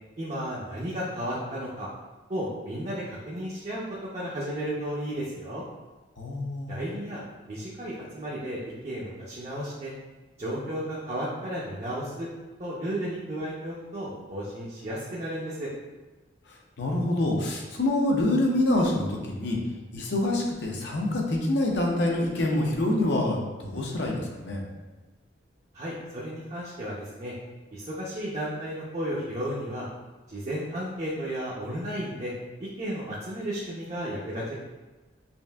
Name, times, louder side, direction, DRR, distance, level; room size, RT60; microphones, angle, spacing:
voice 1, 0.2-1.9 2.3-3.8 4.1-5.6 6.7-9.9 10.4-12.3 12.6-15.7 25.7-27.3 27.7-29.9 30.3-32.3 32.6-34.5, equal, 35° right, -6 dB, 0.5 m, -33 dB
voice 2, 6.2-6.8 16.5-19.6 19.9-24.7, left 1 dB, 65° left, 0 dB, 0.7 m, -26 dB
5.2 x 2.5 x 2.2 m, 1.2 s
head